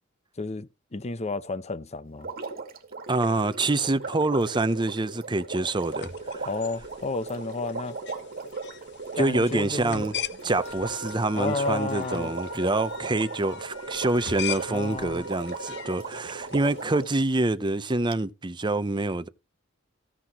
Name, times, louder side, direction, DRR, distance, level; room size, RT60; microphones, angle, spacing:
voice 1, 0.4-2.3 6.5-8.0 9.1-10.0 11.3-12.3 14.7-15.2, left 3 dB, 35° left, 0.7 m, -31 dB
Water, 2.2-17.2 18.1-18.2, right 4 dB, 50° right, 2.4 m, -38 dB
voice 2, 3.1-6.5 9.2-10.1 10.4-19.3, right 2 dB, 25° right, 0.7 m, -26 dB
sound 1, 5.8-17.1, left 10 dB, 60° left, 0.9 m, -41 dB
Wind instrument woodwind instrument, 10.5-16.1, left 1 dB, 85° left, 1.8 m, -43 dB
15.0 x 9.9 x 3.0 m
head